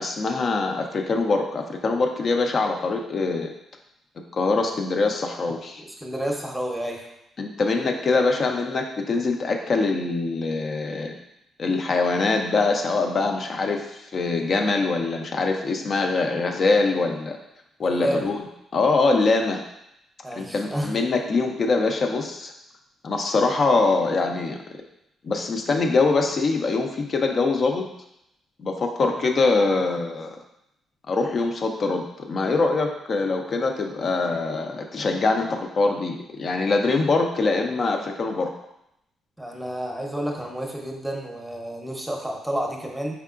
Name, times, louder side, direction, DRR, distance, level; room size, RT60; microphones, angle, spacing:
voice 1, 0.0-3.5 4.3-5.8 7.4-11.1 11.6-17.4 17.8-18.4 18.7-19.6 20.3-22.5 23.0-24.6 25.2-27.8 28.6-30.4 31.1-38.5, left 3 dB, 45° left, 3 dB, 0.6 m, -23 dB
voice 2, 6.0-7.1 17.8-18.3 20.2-21.0 23.7-23.8 29.2-29.3 39.4-43.1, right 1 dB, 5° right, 1 dB, 0.8 m, -30 dB
4.6 x 3.4 x 2.5 m, 0.81 s
cardioid pair, 90°, 0 cm